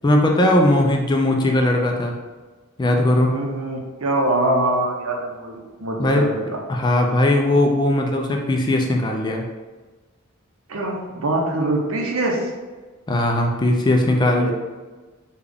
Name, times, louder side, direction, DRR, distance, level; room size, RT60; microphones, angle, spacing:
voice 1, 0.0-2.1 2.8-3.3 6.0-6.3 6.7-9.4 13.1-14.5, left 1 dB, 20° left, 2 dB, 0.3 m, -18 dB
voice 2, 3.3-6.6 10.7-12.6 14.4-14.5, right 1 dB, 75° right, 1 dB, 0.6 m, -24 dB
3.7 x 2.3 x 3.4 m, 1.3 s
head